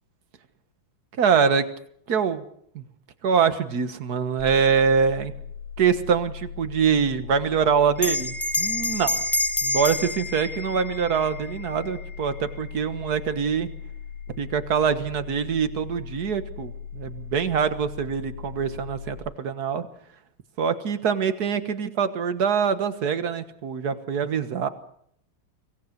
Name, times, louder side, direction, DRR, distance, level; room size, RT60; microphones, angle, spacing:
voice 1, 1.2-1.7 2.1-2.4 2.7-2.8 3.2-5.3 5.8-9.2 9.6-13.7 14.4-19.9 20.6-24.7, right 6 dB, 50° right, 11 dB, 1.8 m, -24 dB
sound 1, 4.4-19.2, left 7 dB, 90° left, 6.4 m, -39 dB
Bell, 8.0-12.8, left 2 dB, 15° left, 1.2 m, -29 dB
25.0 x 17.5 x 6.7 m, 0.67 s
omnidirectional pair, 2.3 m